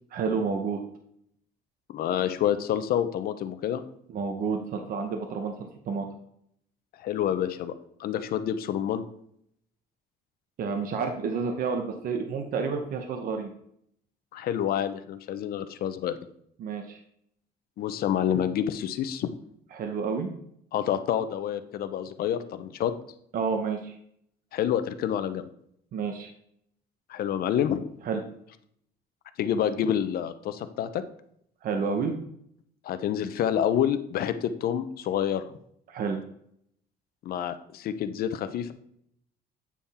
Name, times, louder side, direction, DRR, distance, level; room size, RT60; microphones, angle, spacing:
voice 1, 0.1-0.8 4.1-5.5 5.9-6.1 10.6-13.5 16.6-17.0 19.7-20.3 23.3-23.9 25.9-26.3 28.0-28.2 31.6-32.1 35.9-36.2, right 5 dB, 60° right, 4 dB, 0.9 m, -29 dB
voice 2, 1.9-3.8 7.0-7.7 8.0-9.0 14.3-16.2 17.8-19.3 20.7-22.9 24.5-25.5 27.1-27.8 29.4-31.0 32.8-35.5 37.2-38.7, left 9 dB, 65° left, 11 dB, 0.6 m, -28 dB
8.5 x 3.6 x 4.2 m, 0.69 s
cardioid pair, 110°, 17 cm